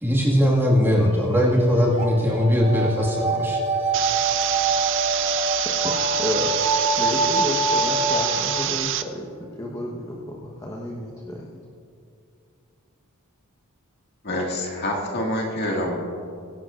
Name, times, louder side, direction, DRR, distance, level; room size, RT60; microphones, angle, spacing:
voice 1, 0.0-3.6, equal, 10° right, -4 dB, 1.9 m, -20 dB
sound 1, 1.1-8.8, right 2 dB, 30° right, 1.0 m, -25 dB
sound 2, 3.9-9.0, right 12 dB, 60° right, 0.5 m, -26 dB
voice 2, 5.8-11.6, left 1 dB, 15° left, -2 dB, 1.1 m, -31 dB
voice 3, 14.2-15.9, left 1 dB, 50° left, -1 dB, 2.0 m, -26 dB
23.0 x 10.5 x 2.5 m, 2.4 s
head